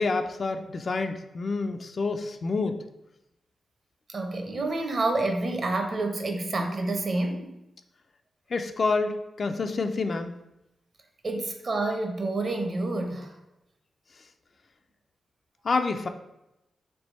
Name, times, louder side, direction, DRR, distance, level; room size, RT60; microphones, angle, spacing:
voice 1, 0.0-2.8 8.5-10.3 15.6-16.1, left 3 dB, 55° left, 6 dB, 0.3 m, -28 dB
voice 2, 4.1-7.5 11.2-13.3, right 2 dB, 50° right, 4 dB, 0.7 m, -28 dB
3.4 x 3.0 x 4.0 m, 0.89 s
cardioid pair, 80°, 0 cm